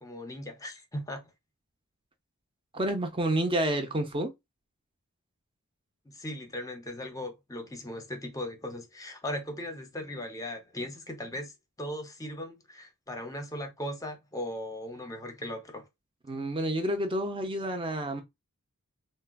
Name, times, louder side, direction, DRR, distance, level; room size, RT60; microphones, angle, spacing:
voice 1, 0.0-1.3 6.0-15.9, left 1 dB, 15° left, 0.7 m, -38 dB
voice 2, 2.7-4.3 16.3-18.2, right 1 dB, 25° right, 0.6 m, -29 dB
3.7 x 2.1 x 2.2 m
head